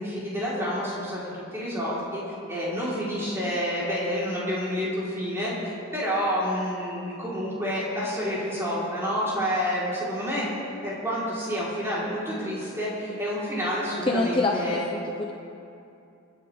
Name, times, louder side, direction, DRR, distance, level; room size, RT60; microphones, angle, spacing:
voice 1, 0.0-2.2 2.5-10.4 10.8-14.9, equal, 10° right, -9 dB, 4.4 m, -29 dB
voice 2, 14.0-15.3, left 2 dB, 25° left, 0 dB, 0.8 m, -26 dB
27.5 x 10.5 x 3.7 m, 2.6 s
head